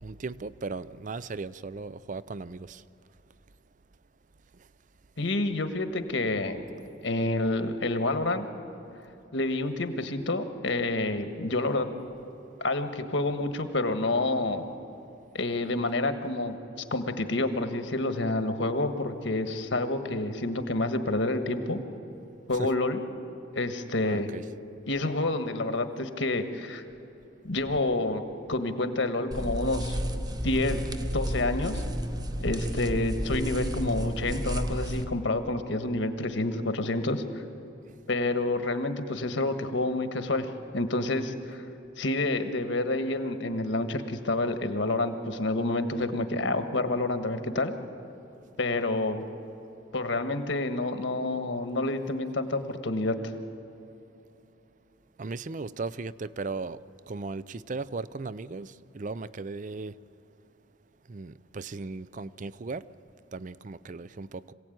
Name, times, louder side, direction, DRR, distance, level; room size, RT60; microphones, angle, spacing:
voice 1, 0.0-2.8 22.5-22.7 24.0-24.5 32.5-32.8 36.9-37.0 55.2-56.8 57.1-59.9 61.1-62.8 63.3-64.5, right 3 dB, 40° right, 17 dB, 0.5 m, -37 dB
voice 2, 5.2-6.6 7.0-8.4 9.3-11.9 12.6-14.6 15.3-16.6 16.9-21.8 22.5-23.0 23.5-24.3 24.9-26.8 27.4-28.2 28.5-30.0 30.4-30.8 31.1-31.8 32.4-37.4 38.1-40.5 40.7-41.6 42.0-47.7 48.6-49.2 49.9-53.3, left 2 dB, 65° left, 8 dB, 1.4 m, -28 dB
sound 1, 29.3-35.0, equal, 20° right, 0.9 m, -31 dB
25.5 x 16.5 x 9.3 m, 2.8 s
head